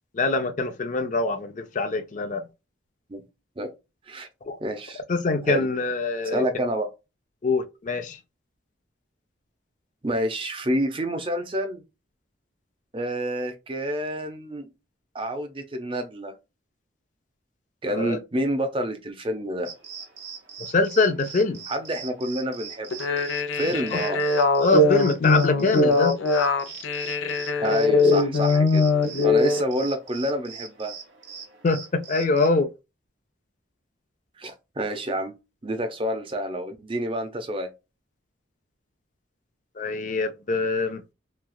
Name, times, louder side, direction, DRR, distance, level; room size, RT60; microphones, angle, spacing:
voice 1, 0.1-2.4 4.5-4.6 5.1-6.4 7.4-8.2 17.9-18.2 20.7-21.6 23.9-24.0 24.6-26.1 31.6-32.7 39.8-41.0, left 3 dB, 40° left, 0.4 m, -24 dB
voice 2, 4.6-5.0 5.4-5.7 6.2-6.9 10.0-11.8 12.9-14.7 15.1-16.4 17.8-19.7 21.7-22.9 23.5-24.2 27.6-28.9 29.2-30.9 34.4-35.4 35.6-37.7, equal, 25° right, 0.5 m, -28 dB
sound 1, 19.6-32.5, right 6 dB, 65° right, 1.0 m, -42 dB
sound 2, 22.9-29.6, left 3 dB, 85° left, 0.6 m, -21 dB
3.2 x 2.3 x 2.2 m
head